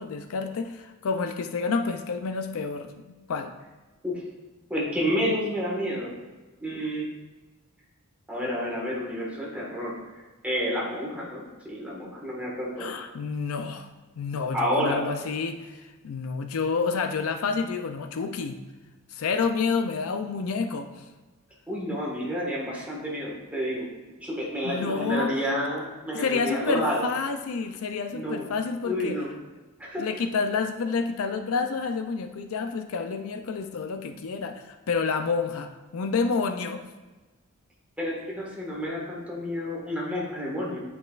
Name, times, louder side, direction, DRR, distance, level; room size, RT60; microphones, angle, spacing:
voice 1, 0.0-2.9 3.3-3.5 12.8-13.9 14.2-18.6 19.1-21.1 24.6-25.3 26.1-29.2 30.0-36.8, left 4 dB, 70° left, 7 dB, 0.4 m, -29 dB
voice 2, 4.7-6.1 6.6-7.1 8.3-9.9 10.4-12.9 14.5-15.0 21.7-23.9 24.2-27.1 28.1-28.5 28.8-29.3 29.8-30.1 38.0-40.8, equal, 5° right, -4 dB, 1.6 m, -29 dB
9.4 x 5.4 x 2.4 m, 1.2 s
head